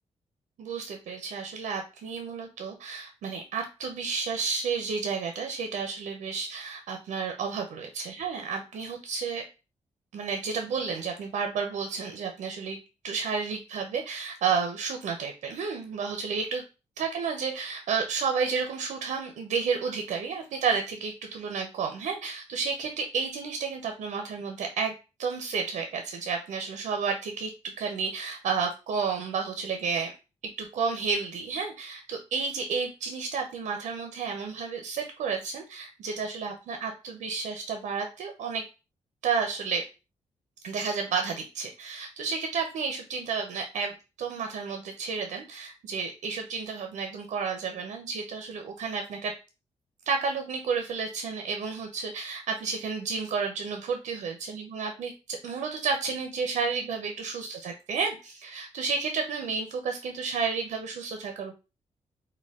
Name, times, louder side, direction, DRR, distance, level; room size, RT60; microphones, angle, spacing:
voice 1, 0.6-9.4 10.1-12.8 13.0-16.6 17.0-24.9 25.2-30.1 30.4-38.6 39.2-39.8 40.6-43.9 44.2-49.3 50.1-61.5, right 5 dB, 85° right, 4 dB, 0.6 m, -31 dB
4.4 x 2.2 x 3.5 m, 0.30 s
wide cardioid pair, 140°, 12 cm